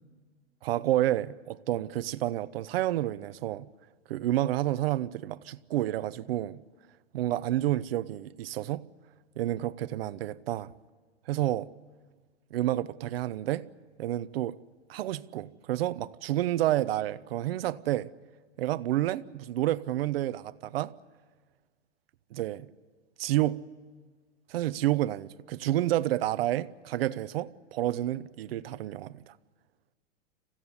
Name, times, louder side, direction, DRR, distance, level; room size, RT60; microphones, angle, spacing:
voice 1, 0.6-3.7 4.1-6.6 7.1-8.9 9.4-10.7 11.3-11.7 12.5-13.7 14.0-14.6 14.9-18.1 18.6-20.9 22.3-22.7 23.2-23.6 24.5-29.3, right 14 dB, 55° right, 0.8 m, -29 dB
26.5 x 16.0 x 9.8 m
hypercardioid pair, 155°, 36 cm